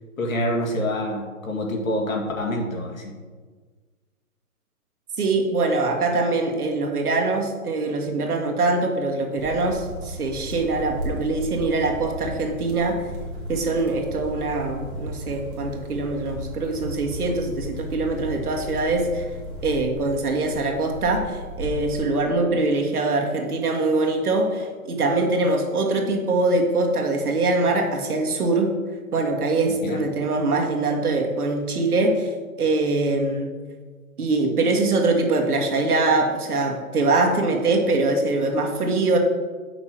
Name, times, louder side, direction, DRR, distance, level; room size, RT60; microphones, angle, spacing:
voice 1, 0.2-3.1 29.8-30.0, left 1 dB, 65° left, 0 dB, 2.0 m, -26 dB
voice 2, 5.2-13.1 13.5-19.3 19.6-28.7 29.1-32.3 32.6-33.5 34.2-39.2, right 2 dB, 85° right, 2 dB, 1.7 m, -23 dB
sound 1, 9.3-22.0, equal, 35° right, 1.9 m, -35 dB
7.5 x 5.9 x 4.5 m, 1.4 s
hypercardioid pair, 180°, 44 cm